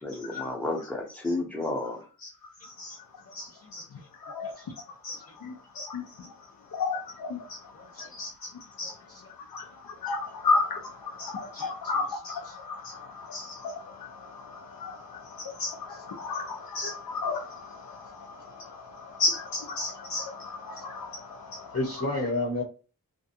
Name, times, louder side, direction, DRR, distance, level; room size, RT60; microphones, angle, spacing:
voice 1, 0.0-2.0, left 2 dB, 5° left, 0.7 m, -31 dB
voice 2, 3.3-3.8 4.2-4.5 5.0-6.0 6.7-7.6 8.0-8.5 8.8-8.9 9.5-9.6 10.0-21.7, left 3 dB, 75° left, 0.5 m, -33 dB
voice 3, 8.8-9.2 11.5-11.7 12.1-12.2 12.4-12.5 15.9-16.0 21.7-22.6, left 2 dB, 45° left, 0.8 m, -32 dB
2.5 x 2.1 x 2.7 m
wide cardioid pair, 55°, 35 cm